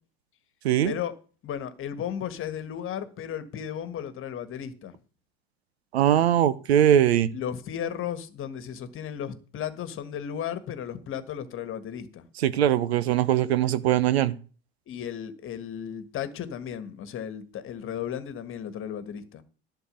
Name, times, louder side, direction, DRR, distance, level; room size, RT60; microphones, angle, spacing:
voice 1, 0.8-1.1 1.4-4.9 7.3-12.2 14.9-19.4, left 9 dB, 40° left, 1.5 m, -34 dB
voice 2, 5.9-7.3 12.4-14.4, right 11 dB, 85° right, 0.8 m, -21 dB
11.0 x 4.6 x 8.1 m
hypercardioid pair, 80°, 31 cm